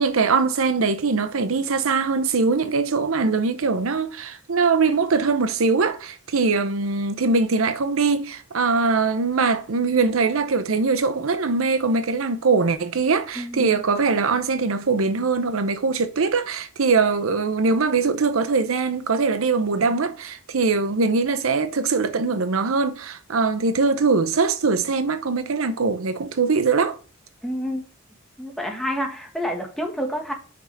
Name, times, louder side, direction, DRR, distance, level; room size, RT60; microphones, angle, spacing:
voice 1, 0.0-27.0, right 4 dB, 85° right, 0.7 m, -22 dB
voice 2, 13.3-13.8 27.4-27.8 28.4-30.3, equal, ahead, 1.5 m, -28 dB
5.9 x 4.8 x 5.5 m
head